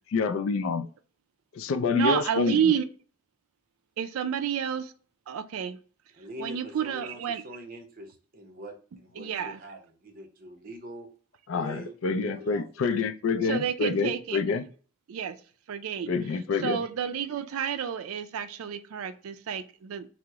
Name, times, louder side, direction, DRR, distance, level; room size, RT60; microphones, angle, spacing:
voice 1, 0.1-0.9 1.5-2.7 11.5-14.6 16.1-16.8, left 4 dB, 65° left, 0.3 m, -27 dB
voice 2, 1.9-2.9 4.0-4.9 5.3-5.8 6.4-7.4 9.2-9.6 13.4-14.5 15.1-15.4 15.7-16.2 16.6-20.1, right 8 dB, 80° right, 0.4 m, -30 dB
voice 3, 6.1-11.1 11.5-12.0 12.2-12.8, right 1 dB, 40° right, 0.6 m, -44 dB
2.9 x 2.0 x 3.4 m
head